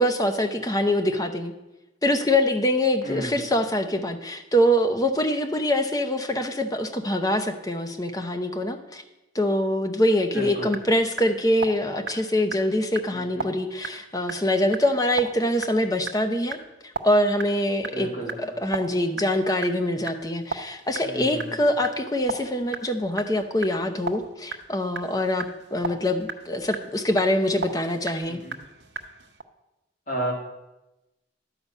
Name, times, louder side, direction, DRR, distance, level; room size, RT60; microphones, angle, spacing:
voice 1, 0.0-1.5 2.0-9.0 9.3-16.6 16.8-18.1 18.4-28.4, left 1 dB, 20° left, 7 dB, 0.7 m, -24 dB
voice 2, 3.0-3.4 10.3-10.7 13.1-13.5 17.9-18.6 21.0-21.5 28.2-28.6 30.1-30.3, right 1 dB, 40° left, 0 dB, 2.2 m, -32 dB
sound 1, 10.4-29.4, right 4 dB, 65° right, 0.8 m, -38 dB
11.0 x 5.5 x 8.1 m, 0.98 s
head